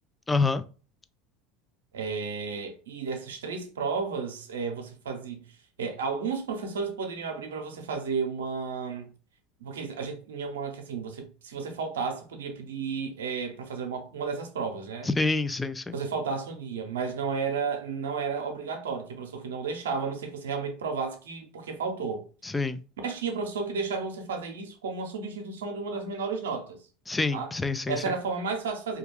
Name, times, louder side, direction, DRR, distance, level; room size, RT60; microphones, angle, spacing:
voice 1, 0.3-0.6 15.0-15.9 22.4-22.8 27.1-28.1, left 3 dB, 15° left, 0.3 m, -27 dB
voice 2, 1.9-9.1 9.6-15.1 15.9-22.2 23.0-26.8 27.3-27.5 27.9-29.0, right 5 dB, 85° right, 0.6 m, -33 dB
2.3 x 2.2 x 3.1 m
hypercardioid pair, 90°, 0 cm